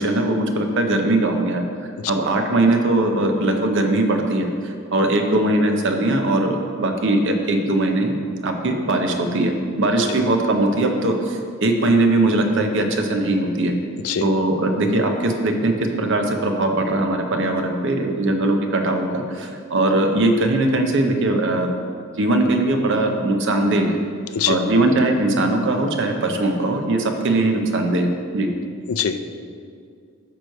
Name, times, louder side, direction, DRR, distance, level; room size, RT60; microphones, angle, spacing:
voice 1, 0.0-1.6 2.1-13.7 14.2-21.7 22.2-24.0 24.5-28.5, right 2 dB, 55° right, 4 dB, 0.7 m, -20 dB
voice 2, 28.9-29.2, left 8 dB, 70° left, 10 dB, 0.4 m, -22 dB
9.2 x 3.1 x 6.4 m, 2.3 s
head